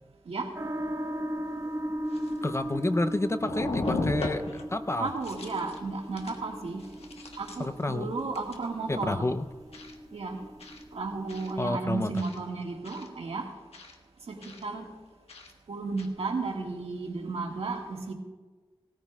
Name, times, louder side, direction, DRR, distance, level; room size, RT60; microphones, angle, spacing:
sound 1, 0.5-11.7, right 1 dB, 35° right, 1.3 m, -37 dB
sound 2, 1.5-1.6 2.1-3.0 3.4-4.7 5.1-5.8 6.2-6.4 6.8-7.8 8.3-8.7 9.7-10.0 10.6-10.8 11.3-11.5 12.2-12.4 12.8-13.1 13.7-14.0 14.4-14.6 15.3-15.5 16.0-16.1, left 2 dB, 80° left, 1.4 m, -37 dB
voice 1, 2.4-4.4 4.7-5.1 7.6-8.1 8.9-9.4 11.6-12.1, left 2 dB, 25° left, 9 dB, 0.6 m, -29 dB
voice 2, 5.0-6.8 7.4-9.3 10.1-10.4 10.9-13.5 14.3-14.4 14.6-14.9 15.7-18.1, right 3 dB, 75° right, 2 dB, 1.8 m, -33 dB
19.0 x 14.5 x 2.4 m, 1.3 s
cardioid pair, 55°, 10 cm